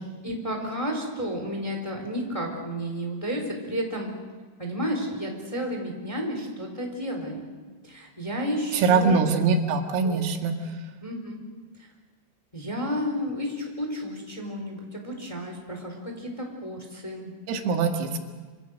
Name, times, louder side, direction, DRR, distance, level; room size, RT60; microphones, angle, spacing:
voice 1, 0.2-4.1 4.6-7.5 7.8-9.2 10.0-10.5 11.0-11.4 11.8-11.9 12.5-17.3, equal, 5° left, 2 dB, 3.4 m, -32 dB
voice 2, 8.7-10.6 17.5-18.2, right 5 dB, 90° right, 4 dB, 4.7 m, -23 dB
26.5 x 26.0 x 6.5 m, 1.4 s
omnidirectional pair, 5.9 m